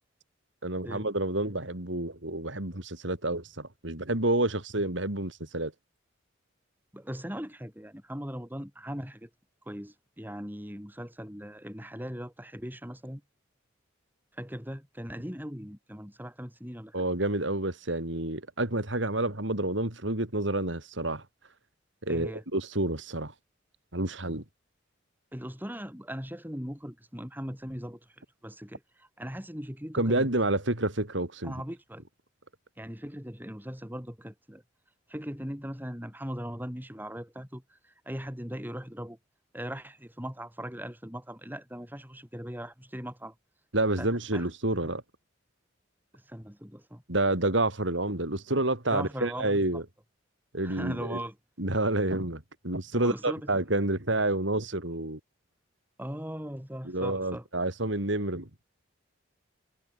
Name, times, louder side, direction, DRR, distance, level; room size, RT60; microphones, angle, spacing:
voice 1, 0.6-5.7 16.9-21.2 22.0-23.3 23.9-24.4 29.9-31.6 43.7-45.0 47.1-49.8 50.5-51.2 51.6-55.2 56.8-58.5, right 2 dB, 70° right, 3.8 m, -29 dB
voice 2, 6.9-9.3 9.7-13.2 14.3-17.0 22.1-22.4 25.3-28.2 28.4-30.3 31.4-32.0 32.8-34.6 35.1-39.2 39.5-43.3 44.0-44.5 44.8-44.9 46.1-47.0 48.9-49.8 50.6-51.4 52.9-53.5 56.0-57.5, equal, 10° right, 7.1 m, -39 dB
head